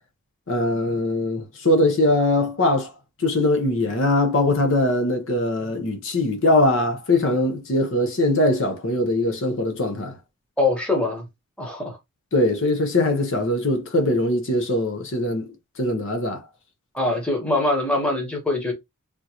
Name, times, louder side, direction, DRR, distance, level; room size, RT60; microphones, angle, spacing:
voice 1, 0.5-2.9 3.2-10.2 12.3-15.5 15.8-16.5, left 1 dB, 55° left, 0.7 m, -21 dB
voice 2, 10.6-11.3 11.6-12.0 16.9-18.7, left 2 dB, 5° left, 1.0 m, -23 dB
3.6 x 2.5 x 2.9 m
head